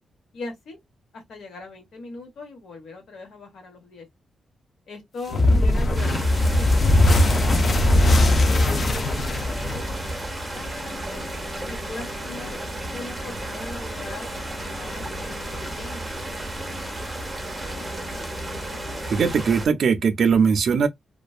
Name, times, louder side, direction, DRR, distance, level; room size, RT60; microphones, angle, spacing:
voice 1, 0.3-0.8 1.1-4.1 4.9-7.8 8.8-9.0 9.5-10.2 10.5-11.2 11.7-12.6 12.9-14.3 14.6-16.0 17.6-17.9, left 3 dB, 75° left, 1.2 m, -40 dB
sound 1, 5.3-19.2, left 3 dB, 55° left, 0.9 m, -42 dB
sound 2, 5.3-10.4, left 1 dB, 35° left, 0.4 m, -19 dB
sound 3, 5.9-19.7, right 1 dB, 15° right, 0.6 m, -33 dB
voice 2, 19.1-20.9, right 6 dB, 55° right, 0.4 m, -20 dB
2.5 x 2.2 x 2.3 m
wide cardioid pair, 165°, 0 cm